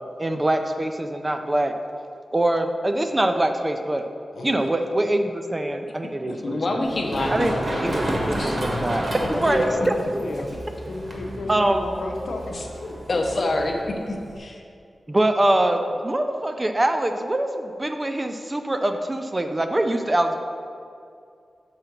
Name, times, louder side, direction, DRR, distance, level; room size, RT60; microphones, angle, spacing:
voice 1, 0.2-1.7 2.3-4.1 4.4-6.8 7.3-7.5 7.8-8.0 8.3-9.1 9.3-9.9 11.5-11.8 15.1-20.4, right 1 dB, 20° right, 6 dB, 0.3 m, -23 dB
voice 2, 6.3-7.9 8.3-8.6 13.1-14.6, left 2 dB, 45° left, 2 dB, 0.7 m, -27 dB
Run, 6.8-14.4, right 1 dB, 40° right, 1.0 m, -31 dB
voice 3, 9.1-10.5 10.9-13.2, left 2 dB, 85° left, 1 dB, 0.7 m, -32 dB
5.7 x 3.8 x 6.0 m, 2.4 s
wide cardioid pair, 160°, 0 cm